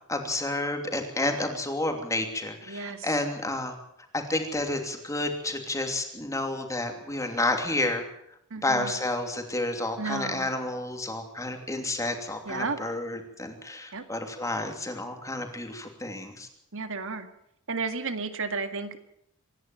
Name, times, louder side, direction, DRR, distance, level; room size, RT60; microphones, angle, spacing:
voice 1, 0.1-3.8 4.1-8.0 8.6-16.5, left 2 dB, 15° left, 4 dB, 2.9 m, -30 dB
voice 2, 2.7-3.1 8.5-8.9 10.0-10.5 12.5-12.8 13.9-14.0 16.7-17.3 17.7-19.0, right 4 dB, 65° right, 9 dB, 1.9 m, -32 dB
26.0 x 11.0 x 9.1 m, 0.77 s
head